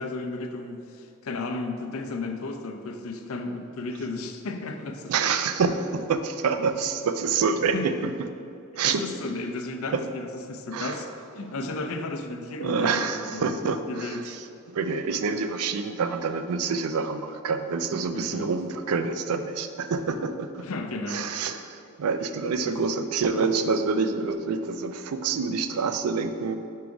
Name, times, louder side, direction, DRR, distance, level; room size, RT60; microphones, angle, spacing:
voice 1, 0.0-5.1 6.6-6.7 7.7-7.9 8.7-11.1 11.3-13.6 13.9-14.3 18.1-18.5 20.6-21.3 22.6-22.8, left 2 dB, 70° left, 5 dB, 0.5 m, -34 dB
voice 2, 5.1-7.9 8.8-9.0 9.9-10.0 10.7-11.0 12.6-14.4 14.7-20.6 21.1-26.5, right 5 dB, 85° right, 9 dB, 0.4 m, -27 dB
4.8 x 4.7 x 5.1 m, 2.5 s
head